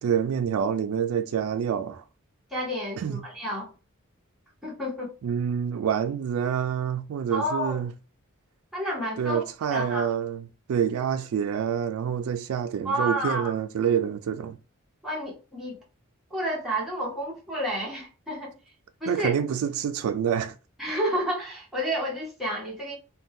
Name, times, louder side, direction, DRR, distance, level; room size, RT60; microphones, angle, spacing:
voice 1, 0.0-2.0 3.0-3.2 5.2-7.9 9.2-14.6 19.1-20.5, right 8 dB, 85° right, 0.3 m, -27 dB
voice 2, 2.5-3.7 4.6-5.1 7.3-7.8 8.7-9.4 9.7-10.1 12.8-13.5 15.0-15.8 16.3-18.5 19.0-19.4 20.8-23.0, equal, ahead, 1.2 m, -30 dB
2.6 x 2.2 x 3.5 m
head